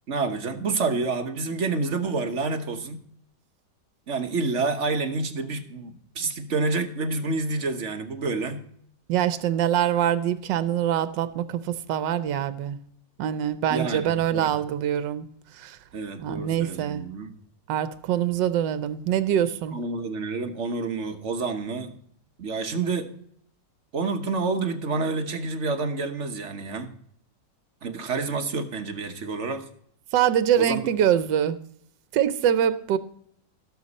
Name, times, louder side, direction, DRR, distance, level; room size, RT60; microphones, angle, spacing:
voice 1, 0.1-3.0 4.1-8.6 13.7-14.5 15.9-17.3 19.7-22.0 22.4-23.1 23.9-26.9 27.8-29.7 30.5-30.9, right 3 dB, 45° right, 7 dB, 1.2 m, -28 dB
voice 2, 9.1-12.8 13.2-15.3 15.5-15.8 16.2-17.0 17.7-19.8 30.1-31.6 32.1-33.0, right 10 dB, 80° right, 13 dB, 1.4 m, -24 dB
17.5 x 7.0 x 4.1 m, 0.65 s
omnidirectional pair, 2.0 m